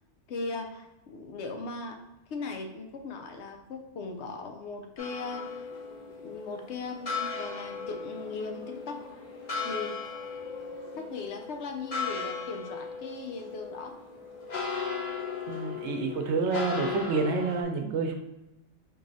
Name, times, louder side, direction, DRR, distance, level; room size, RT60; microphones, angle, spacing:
voice 1, 0.3-2.0 2.3-5.6 6.2-9.0 9.6-10.0 11.0-13.9, left 4 dB, 70° left, 4 dB, 0.9 m, -38 dB
sound 1, 5.0-17.6, left 5 dB, 40° left, 0.8 m, -37 dB
voice 2, 15.5-18.2, right 4 dB, 75° right, 4 dB, 0.9 m, -29 dB
4.6 x 3.0 x 2.6 m, 0.94 s
omnidirectional pair, 1.2 m